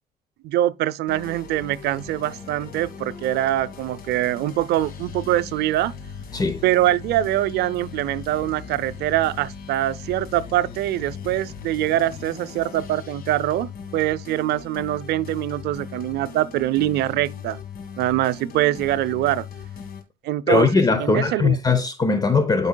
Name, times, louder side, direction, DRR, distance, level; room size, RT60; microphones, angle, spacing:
voice 1, 0.4-5.9 6.6-17.6 18.0-19.5 20.2-20.7 21.0-21.6, right 14 dB, 75° right, 0.5 m, -23 dB
sound 1, 1.1-20.0, left 6 dB, 60° left, 1.7 m, -38 dB
voice 2, 6.3-6.6 20.5-22.7, left 4 dB, 20° left, 0.8 m, -20 dB
12.0 x 5.4 x 2.2 m
cardioid pair, 110°, 17 cm